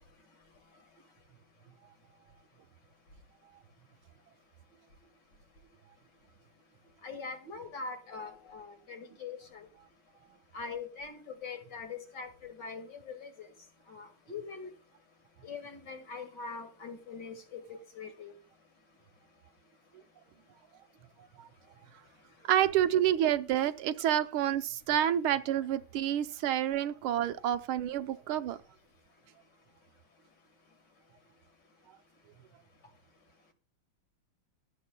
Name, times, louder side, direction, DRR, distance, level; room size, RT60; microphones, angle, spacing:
voice 1, 7.0-9.7 10.5-13.5 13.9-14.7 15.4-18.3, left 4 dB, 55° left, 2.5 m, -42 dB
voice 2, 22.5-28.6, right 11 dB, 85° right, 1.6 m, -28 dB
22.5 x 7.8 x 2.2 m
omnidirectional pair, 2.3 m